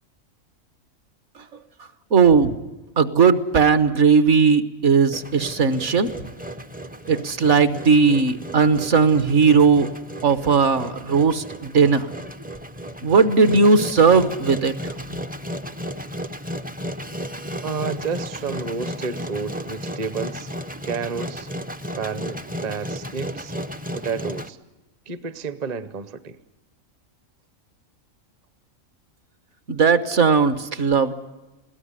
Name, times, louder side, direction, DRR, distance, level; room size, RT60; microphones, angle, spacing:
voice 1, 2.1-2.5 3.0-6.1 7.1-9.9 10.2-12.1 13.0-14.9 29.7-31.1, right 5 dB, 60° right, 12 dB, 1.3 m, -17 dB
Engine, 5.1-24.5, equal, 15° right, 0.3 m, -34 dB
voice 2, 17.6-20.5 20.8-21.5 22.0-23.5 23.9-24.6 25.1-26.4, right 5 dB, 35° right, 14 dB, 0.8 m, -30 dB
21.5 x 17.0 x 9.8 m, 1.1 s
omnidirectional pair, 1.4 m